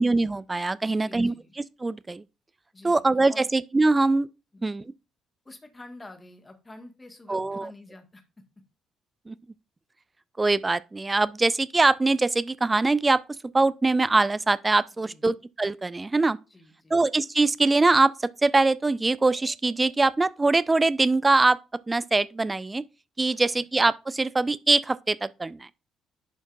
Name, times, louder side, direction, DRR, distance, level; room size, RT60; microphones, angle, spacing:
voice 1, 0.0-2.2 2.8-4.3 4.6-4.8 7.3-7.7 9.3-9.4 10.4-13.2 13.5-16.4 16.9-21.6 21.9-22.8 23.2-25.8, right 3 dB, 20° right, 0.4 m, -23 dB
voice 2, 0.8-1.5 2.7-3.0 3.3-3.5 4.5-4.6 5.4-8.4 15.0-15.3 16.5-17.0 23.3-23.6, left 2 dB, 20° left, 1.5 m, -48 dB
11.0 x 4.4 x 2.4 m
figure-of-eight pair, 45°, 0 cm